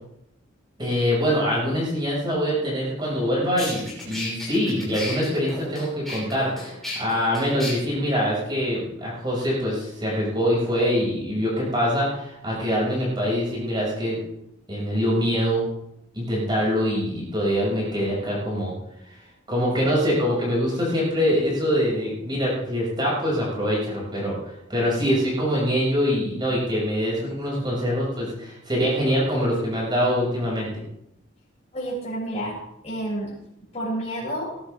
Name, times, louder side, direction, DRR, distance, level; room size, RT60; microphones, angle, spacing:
voice 1, 0.8-14.2 14.7-15.6 16.1-18.7 19.5-30.7, equal, 20° right, -5 dB, 6.2 m, -24 dB
sound 1, 3.1-3.2 3.6-7.7, left 2 dB, ahead, 6.0 m, -34 dB
voice 2, 31.7-32.5 32.8-33.3 33.7-34.5, right 1 dB, 35° left, -6 dB, 6.6 m, -29 dB
20.5 x 11.5 x 3.5 m, 0.81 s
head